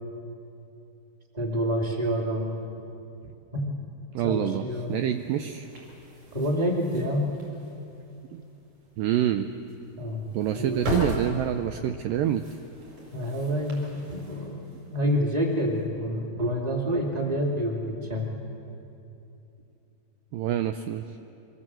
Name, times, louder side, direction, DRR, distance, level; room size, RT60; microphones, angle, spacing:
voice 1, 1.3-2.6 3.5-3.8 4.2-5.0 6.3-7.4 10.0-10.3 10.5-11.0 13.1-18.3, equal, 10° right, 0 dB, 2.1 m, -28 dB
voice 2, 4.1-5.7 8.3-8.4 9.0-9.5 10.3-12.4 20.3-21.0, right 11 dB, 85° right, 8 dB, 2.0 m, -27 dB
sound 1, 4.7-15.9, equal, 45° right, 6.1 m, -39 dB
25.0 x 21.5 x 7.6 m, 2.7 s
omnidirectional pair, 4.8 m